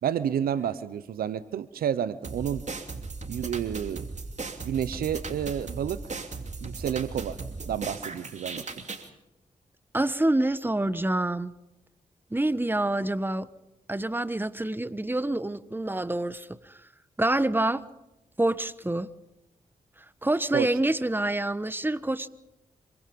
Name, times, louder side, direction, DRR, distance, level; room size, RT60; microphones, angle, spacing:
voice 1, 0.0-2.6 3.3-4.0 4.6-6.0 6.6-7.4 7.6-8.6 20.5-20.7, right 9 dB, 90° right, 16 dB, 0.9 m, -30 dB
sound 1, 2.2-9.1, right 3 dB, 50° right, 2.9 m, -37 dB
voice 2, 9.9-11.5 12.3-13.5 13.9-16.8 17.2-17.8 18.4-19.1 20.2-22.3, right 1 dB, 15° right, 15 dB, 1.2 m, -27 dB
26.5 x 23.5 x 5.4 m, 0.91 s
supercardioid pair, 45°, 15 cm